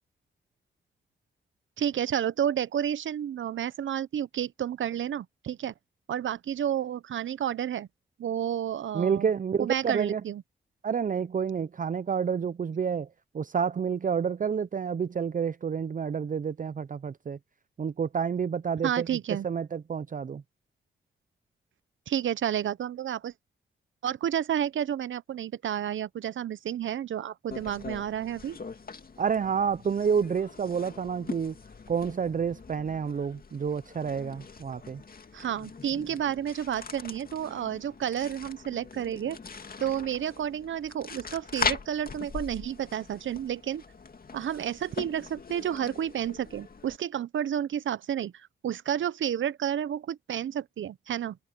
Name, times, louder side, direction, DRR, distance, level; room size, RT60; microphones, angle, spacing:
voice 1, 1.8-5.7 6.1-7.9 8.2-9.3 9.6-10.4 18.8-19.5 22.1-23.3 24.0-28.6 35.3-39.4 39.8-43.8 44.3-48.3 48.6-51.4, right 10 dB, 75° right, 1.0 m, -31 dB
voice 2, 8.9-10.2 10.8-13.1 13.3-17.4 17.8-19.1 19.4-20.4 29.2-31.5 31.9-35.0, right 6 dB, 40° right, 0.6 m, -29 dB
sound 1, 27.5-47.0, left 4 dB, 45° left, 2.4 m, -41 dB
supercardioid pair, 50°, 20 cm